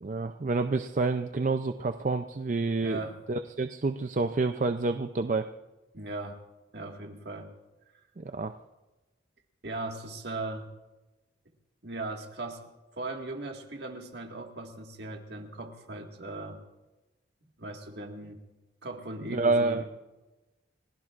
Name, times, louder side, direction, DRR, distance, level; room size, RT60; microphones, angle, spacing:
voice 1, 0.0-3.0 3.3-5.5 8.2-8.5 19.3-19.8, right 3 dB, 40° right, 8 dB, 0.4 m, -28 dB
voice 2, 2.8-3.2 5.9-6.4 6.7-7.5 9.6-10.7 11.8-12.6 13.0-16.6 17.6-18.4 18.8-19.9, right 2 dB, 60° right, 3 dB, 1.8 m, -38 dB
30.0 x 16.5 x 2.5 m, 1.1 s
head